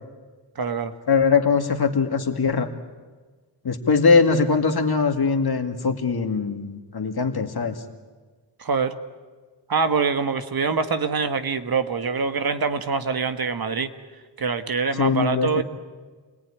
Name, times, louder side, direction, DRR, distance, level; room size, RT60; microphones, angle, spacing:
voice 1, 0.5-0.9 8.6-9.0 9.7-13.9 14.4-15.6, right 5 dB, 55° right, 9 dB, 1.5 m, -24 dB
voice 2, 1.1-2.7 3.6-7.8 15.0-15.6, left 5 dB, 55° left, 5 dB, 2.3 m, -21 dB
28.0 x 18.5 x 10.0 m, 1.4 s
wide cardioid pair, 100°, 44 cm